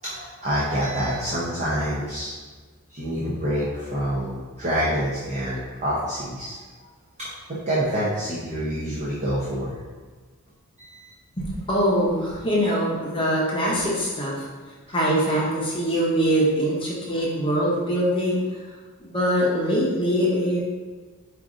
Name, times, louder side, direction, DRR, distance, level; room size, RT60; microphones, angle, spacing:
voice 1, 0.0-2.3 2.9-6.6 7.2-7.3 7.7-9.7 10.8-11.1, equal, 30° right, -8 dB, 0.7 m, -27 dB
voice 2, 11.4-14.5 14.9-18.5 19.0-20.6, equal, 25° left, -5 dB, 0.8 m, -23 dB
5.0 x 2.6 x 3.7 m, 1.4 s
head